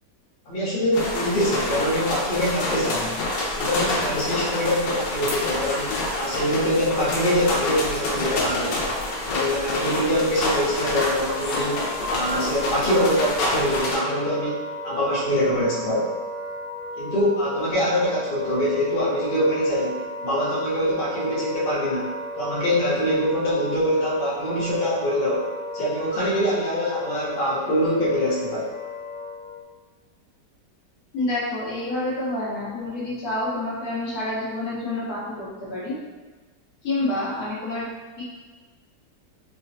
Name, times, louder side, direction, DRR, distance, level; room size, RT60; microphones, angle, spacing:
voice 1, 0.5-3.2 3.6-8.8 9.3-16.1 17.0-25.5 25.7-28.7, equal, 45° left, -7 dB, 0.7 m, -24 dB
sound 1, 0.9-14.0, left 2 dB, 85° left, 1.3 m, -27 dB
Wind instrument woodwind instrument, 10.5-29.6, left 1 dB, 60° right, 0.9 m, -34 dB
voice 2, 31.1-36.0 36.8-37.9 38.2-38.3, left 2 dB, 65° left, -7 dB, 1.2 m, -28 dB
3.7 x 2.1 x 2.6 m, 1.3 s
omnidirectional pair, 1.9 m